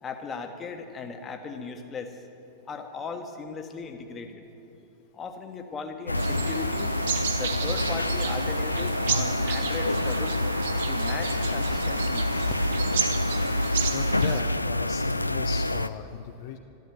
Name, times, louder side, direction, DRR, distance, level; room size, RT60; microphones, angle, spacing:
voice 1, 0.0-2.2 2.6-4.4 5.1-6.9 7.4-10.4 10.9-12.3, left 5 dB, 25° left, 5 dB, 1.3 m, -37 dB
sound 1, 6.1-15.9, left 1 dB, 85° left, 0.3 m, -27 dB
sound 2, 6.1-14.4, right 6 dB, 60° right, 1.1 m, -33 dB
voice 2, 13.9-16.6, left 8 dB, 50° left, 5 dB, 0.6 m, -36 dB
13.0 x 12.5 x 7.3 m, 3.0 s
figure-of-eight pair, 90°, 0 cm